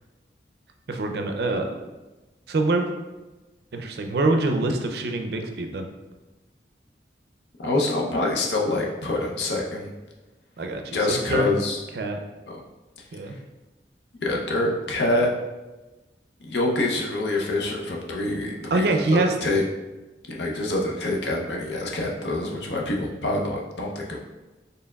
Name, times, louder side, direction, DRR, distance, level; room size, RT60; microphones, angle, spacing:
voice 1, 0.9-1.7 2.5-2.9 3.7-5.9 10.6-11.0 11.3-11.5 12.0-12.2 13.1-13.4 18.7-19.3, right 2 dB, 65° right, 5 dB, 0.4 m, -24 dB
voice 2, 7.6-9.9 10.9-11.8 12.5-12.6 13.3-13.4 14.2-15.3 16.4-19.6 20.3-24.2, left 2 dB, 85° left, -1 dB, 0.6 m, -26 dB
4.4 x 3.3 x 2.3 m, 1.1 s
head